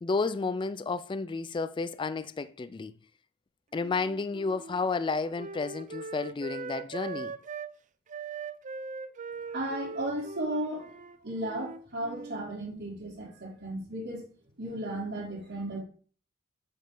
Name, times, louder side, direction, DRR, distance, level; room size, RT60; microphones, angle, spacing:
voice 1, 0.0-2.9 3.7-7.3, left 4 dB, 25° left, 0.3 m, -31 dB
Wind instrument woodwind instrument, 3.8-7.7 8.1-12.5, right 4 dB, 35° right, 0.5 m, -41 dB
voice 2, 9.5-10.9 11.2-14.3 14.6-15.8, right 1 dB, 55° right, 3.3 m, -35 dB
8.5 x 5.4 x 3.8 m
head